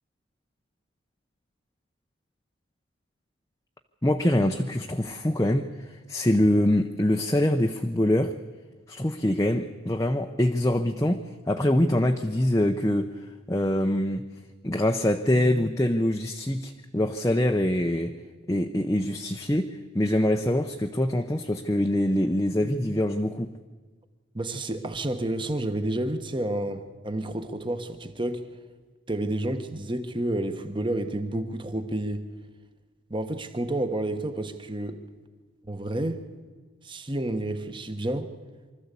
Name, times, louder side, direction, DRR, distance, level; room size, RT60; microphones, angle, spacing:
voice 1, 4.0-8.4 8.9-14.2 14.6-18.2 18.5-23.5, left 1 dB, 15° left, 4 dB, 0.7 m, -24 dB
voice 2, 24.3-28.5 29.1-32.3 33.1-35.0 35.7-36.2 36.8-38.3, right 1 dB, 25° right, 8 dB, 1.2 m, -30 dB
24.5 x 13.5 x 8.3 m, 1.4 s
head